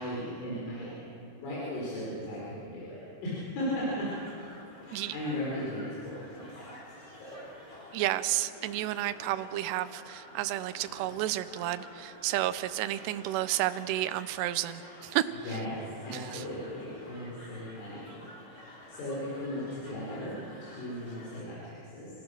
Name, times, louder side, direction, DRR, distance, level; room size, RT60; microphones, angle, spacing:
voice 1, 0.0-4.1 4.8-6.7 7.2-7.4 15.4-18.2 18.9-22.1, equal, 80° left, -7 dB, 7.5 m, -37 dB
sound 1, 4.0-21.4, left 1 dB, 20° left, 3.0 m, -50 dB
voice 2, 7.9-15.6 16.1-16.4, right 14 dB, 80° right, 11 dB, 2.6 m, -31 dB
28.0 x 16.0 x 6.5 m, 2.9 s
omnidirectional pair, 5.4 m